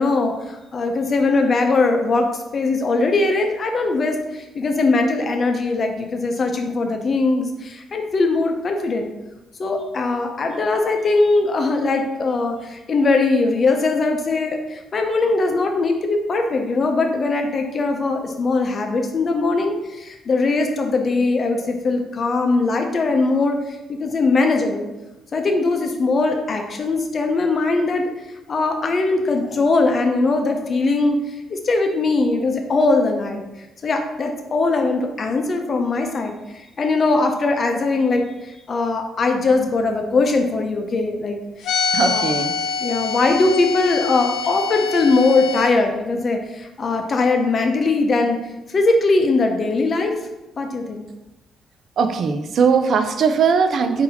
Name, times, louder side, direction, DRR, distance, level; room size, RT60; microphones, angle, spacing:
voice 1, 0.0-2.3 2.5-9.1 9.6-24.9 25.3-28.0 28.5-33.4 33.8-38.2 38.7-41.4 42.0-42.3 42.8-48.4 48.7-50.1 50.6-51.0, left 3 dB, 45° left, 4 dB, 0.7 m, -20 dB
sound 1, 41.6-45.7, left 5 dB, 85° left, 0.5 m, -25 dB
voice 2, 41.9-42.5 52.0-54.0, right 5 dB, 60° right, 8 dB, 0.4 m, -19 dB
4.0 x 2.7 x 4.0 m, 1.0 s
cardioid pair, 90°, 0 cm